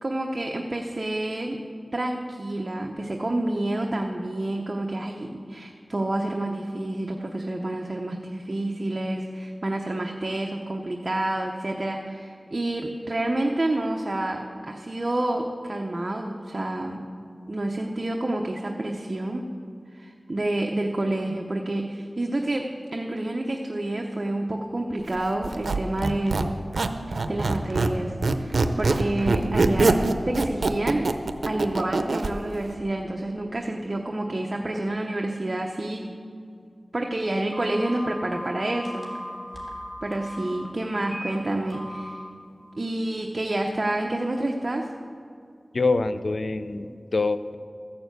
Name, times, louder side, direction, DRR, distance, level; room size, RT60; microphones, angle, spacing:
voice 1, 0.0-1.6 1.9-17.1 17.5-19.4 19.9-26.5 27.1-30.0 30.2-31.1 31.4-36.0 36.9-39.1 40.0-42.2 42.8-44.9, right 1 dB, 45° right, 2 dB, 0.8 m, -28 dB
Squeak, 25.4-28.0 28.2-32.3, right 3 dB, 85° right, 0.6 m, -23 dB
Telephone, 37.5-40.4 41.0-41.3 41.7-42.0, equal, 15° left, 3.5 m, -37 dB
voice 2, 45.7-47.5, left 3 dB, 75° left, 11 dB, 0.5 m, -25 dB
14.0 x 7.0 x 8.0 m, 2.5 s
wide cardioid pair, 55°, 0 cm